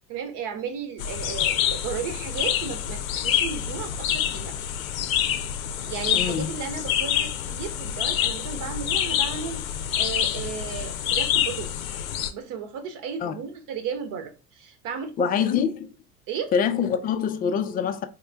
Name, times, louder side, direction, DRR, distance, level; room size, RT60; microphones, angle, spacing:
voice 1, 0.1-4.6 5.8-11.9 12.3-15.3 16.3-16.5, right 7 dB, 45° right, 1.1 m, -34 dB
sound 1, 1.0-12.3, left 10 dB, 65° left, 0.6 m, -27 dB
voice 2, 6.1-6.5 13.2-13.3 15.2-15.8 16.5-18.1, left 7 dB, 20° left, 0.4 m, -24 dB
4.3 x 3.2 x 3.4 m
figure-of-eight pair, 75°, 45 cm